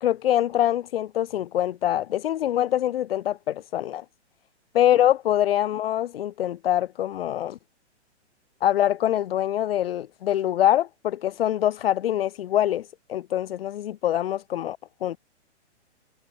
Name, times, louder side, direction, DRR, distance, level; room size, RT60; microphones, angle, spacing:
voice 1, 0.0-4.0 4.7-7.6 8.6-15.2, left 12 dB, 55° left, 1.0 m, -24 dB
hypercardioid pair, 165°, 35 cm